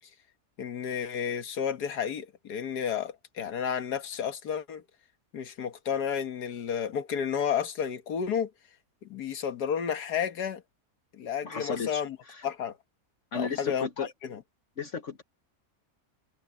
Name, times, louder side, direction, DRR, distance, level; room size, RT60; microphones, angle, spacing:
voice 1, 0.6-4.8 5.3-8.5 9.0-10.6 11.1-12.2 12.4-12.8 13.3-14.4, left 8 dB, 85° left, 1.9 m, -31 dB
voice 2, 11.4-12.0 12.3-12.4 13.3-14.1 14.8-15.2, left 5 dB, 55° left, 1.4 m, -34 dB
omnidirectional pair, 1.7 m